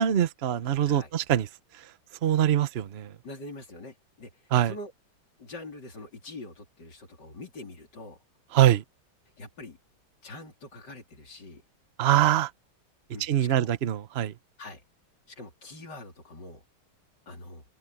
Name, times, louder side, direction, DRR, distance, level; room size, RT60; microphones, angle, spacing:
voice 1, 0.0-1.5 2.2-3.1 4.5-4.7 8.5-8.8 12.0-12.5 13.2-14.3, right 11 dB, 55° right, 0.7 m, -23 dB
voice 2, 3.2-4.9 5.4-8.2 9.4-9.8 10.2-11.6 13.1-13.7 14.6-14.8 15.3-16.6 17.3-17.6, left 2 dB, 55° left, 4.4 m, -44 dB
omnidirectional pair, 2.3 m